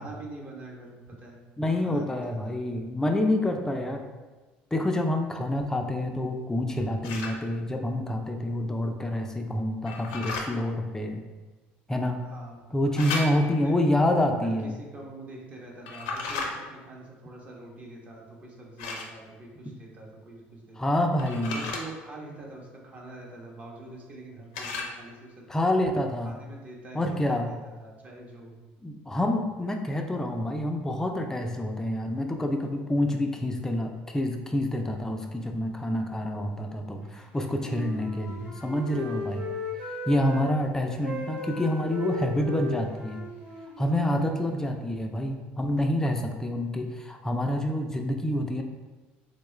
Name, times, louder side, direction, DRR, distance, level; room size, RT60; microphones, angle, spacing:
voice 1, 0.0-2.5 12.2-13.8 14.4-20.8 21.5-25.5 26.2-28.6, right 2 dB, 30° right, -2 dB, 0.9 m, -45 dB
voice 2, 1.6-4.1 4.7-11.2 11.9-12.2 12.7-14.7 19.7-19.8 20.8-21.6 25.5-26.4 26.9-27.5 28.8-39.5 40.1-43.3 43.8-48.6, left 1 dB, 10° left, 3 dB, 0.4 m, -27 dB
sound 1, 7.0-7.4 9.9-10.5 13.0-13.6 15.9-16.5 18.8-19.1 21.2-21.8 24.5-25.0, left 3 dB, 90° left, 0.5 m, -34 dB
Wind instrument woodwind instrument, 37.5-40.5 41.0-44.8, left 2 dB, 55° right, 1.3 m, -37 dB
3.7 x 2.2 x 3.1 m, 1.2 s
supercardioid pair, 95°, 4 cm